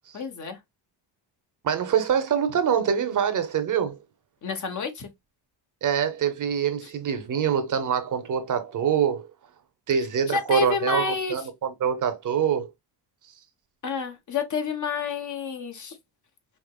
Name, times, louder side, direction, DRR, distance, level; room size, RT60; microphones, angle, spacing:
voice 1, 0.1-0.6 4.4-5.1 6.8-6.9 10.3-11.4 13.8-16.0, left 5 dB, 45° left, 1.0 m, -29 dB
voice 2, 1.6-4.0 5.8-9.3 9.9-12.7, right 8 dB, 45° right, 0.8 m, -25 dB
5.0 x 2.9 x 2.2 m
cardioid pair, 130°, 43 cm